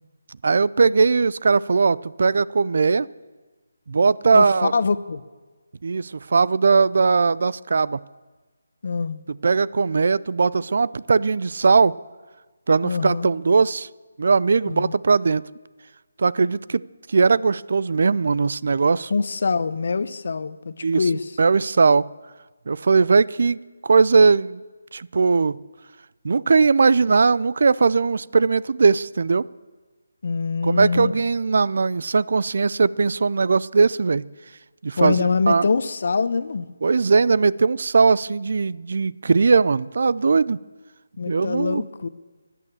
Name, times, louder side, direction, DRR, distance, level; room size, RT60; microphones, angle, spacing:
voice 1, 0.4-3.1 3.9-4.7 5.8-8.0 9.4-11.9 12.7-13.9 14.2-15.4 16.2-16.8 17.1-19.1 20.8-21.0 21.4-22.0 22.7-24.6 24.9-25.6 26.2-29.4 30.6-34.2 34.8-35.7 36.8-40.6 41.3-41.8, right 4 dB, 60° right, 20 dB, 0.4 m, -19 dB
voice 2, 4.3-5.2 8.8-9.2 12.8-13.3 14.6-14.9 19.1-21.2 30.2-31.1 35.0-36.7 41.2-42.1, left 4 dB, 60° left, 15 dB, 0.8 m, -24 dB
15.5 x 11.0 x 7.2 m, 1.3 s
figure-of-eight pair, 155°, 0 cm